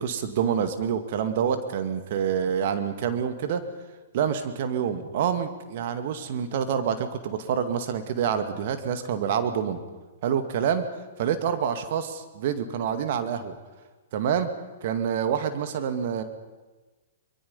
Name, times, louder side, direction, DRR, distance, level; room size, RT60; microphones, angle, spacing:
voice 1, 0.0-3.6 4.1-9.8 10.2-10.8 11.2-13.6 14.1-14.5 14.8-16.2, right 8 dB, 55° right, 9 dB, 2.1 m, -27 dB
23.5 x 22.0 x 5.5 m, 1.3 s
hypercardioid pair, 120°, 0 cm